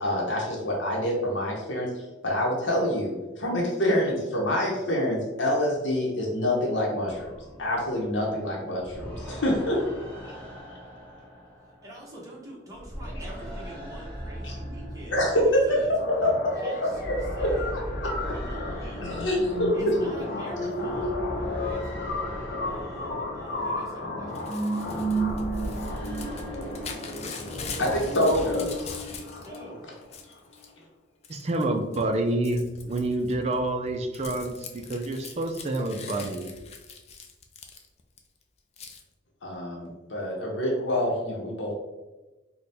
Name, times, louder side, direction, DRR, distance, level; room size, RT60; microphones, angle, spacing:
voice 1, 0.0-7.3 7.6-9.8 14.4-14.6 15.1-15.6 16.1-16.5 16.8-18.4 19.0-20.0 27.8-28.7 39.4-41.7, left 1 dB, 80° left, -2 dB, 0.8 m, -26 dB
sound 1, 7.1-12.4 12.7-26.9, equal, 10° left, 1.2 m, -39 dB
voice 2, 11.8-15.9 16.6-17.8 18.1-19.3 19.7-21.8 22.6-25.2 26.6-27.6 29.3-29.8, right 1 dB, 20° right, -4 dB, 0.9 m, -45 dB
sound 2, 16.0-30.0, equal, 50° left, 0.7 m, -33 dB
Crumpling crinkling / Tearing, 24.3-29.6 29.9-30.7 31.2-31.6 31.9-38.2 38.8-39.0, left 4 dB, 35° left, 0.4 m, -42 dB
voice 3, 31.3-36.5, right 2 dB, 35° right, 5 dB, 0.4 m, -28 dB
4.1 x 2.2 x 3.3 m, 1.1 s
head